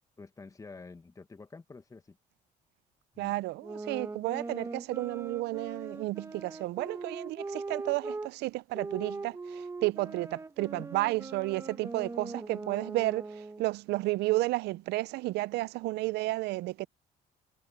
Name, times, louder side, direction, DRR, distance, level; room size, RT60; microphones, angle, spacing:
voice 1, 0.2-2.2 3.1-3.4 10.7-10.8, left 3 dB, 20° left, 1.5 m, -48 dB
voice 2, 3.2-16.9, right 19 dB, 80° right, 0.5 m, -32 dB
sound 1, 3.6-8.3 8.7-13.7, right 3 dB, 15° right, 1.3 m, -41 dB
cardioid pair, 110°, 17 cm